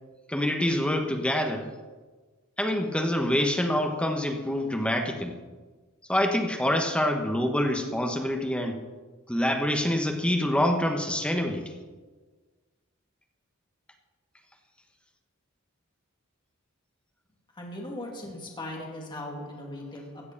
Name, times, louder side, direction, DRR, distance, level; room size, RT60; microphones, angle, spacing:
voice 1, 0.3-1.7 2.6-5.4 6.1-8.8 9.3-11.7, left 1 dB, 5° left, 3 dB, 1.2 m, -26 dB
voice 2, 17.5-20.3, left 1 dB, 20° left, -1 dB, 2.3 m, -38 dB
16.0 x 8.1 x 6.7 m, 1.3 s
head